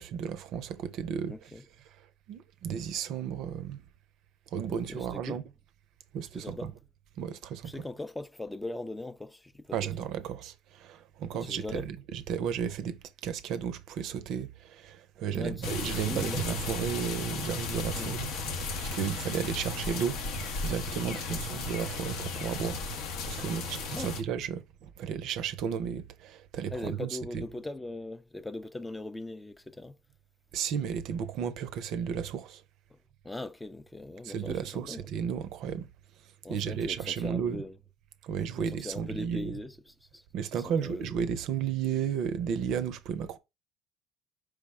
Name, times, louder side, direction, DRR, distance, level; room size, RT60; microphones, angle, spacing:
voice 1, 0.0-1.3 2.3-3.8 4.5-5.4 6.1-6.7 7.2-7.7 9.7-18.3 18.6-22.8 23.3-27.1 27.3-27.4 30.5-32.6 34.2-35.9 36.5-37.6 38.2-39.6 40.3-43.4, right 7 dB, 65° right, 0.5 m, -33 dB
voice 2, 1.3-1.6 4.7-5.4 6.3-6.7 7.6-10.1 11.3-11.9 15.3-16.4 18.0-18.1 21.1-21.4 23.9-24.1 26.7-30.0 32.9-33.0 33.2-35.0 36.4-37.7 38.6-40.2 40.5-41.2, left 2 dB, 10° left, 0.4 m, -40 dB
sound 1, 15.6-24.2, left 3 dB, 70° left, 0.7 m, -35 dB
4.7 x 2.1 x 4.7 m
supercardioid pair, 75°, 0 cm